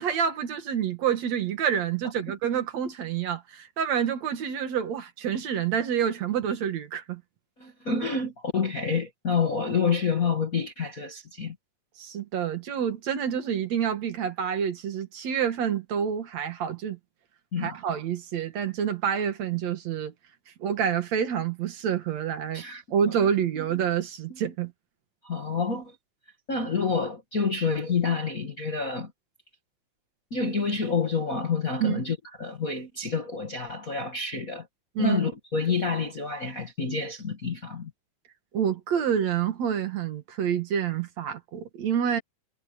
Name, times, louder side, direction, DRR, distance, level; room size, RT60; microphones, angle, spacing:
voice 1, 0.0-7.2 12.0-17.0 17.6-20.1 20.6-22.6 22.9-24.7 31.8-32.0 35.0-35.2 38.5-42.2, right 8 dB, 60° right, 2.7 m, -28 dB
voice 2, 7.6-11.6 17.5-17.7 22.5-22.8 24.3-24.4 25.2-26.0 26.5-29.1 30.3-34.7 35.0-37.9, left 5 dB, 35° left, 1.7 m, -28 dB
omnidirectional pair, 3.7 m